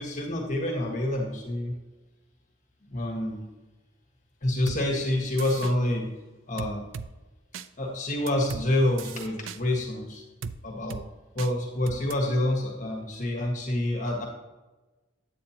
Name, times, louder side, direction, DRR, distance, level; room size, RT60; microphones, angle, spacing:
voice 1, 0.0-1.7 2.9-3.4 4.4-6.1 6.5-6.8 7.8-10.2 10.6-11.0 11.3-14.3, left 1 dB, 40° left, 0 dB, 1.5 m, -27 dB
sound 1, 4.7-4.8 5.4-5.7 6.6-7.1 7.5-7.7 8.3-8.7 9.0-9.6 10.4-10.6 10.9-11.0 11.4-11.5 11.9-12.1, right 5 dB, 90° right, 0.4 m, -36 dB
9.1 x 8.6 x 2.9 m, 1.2 s
head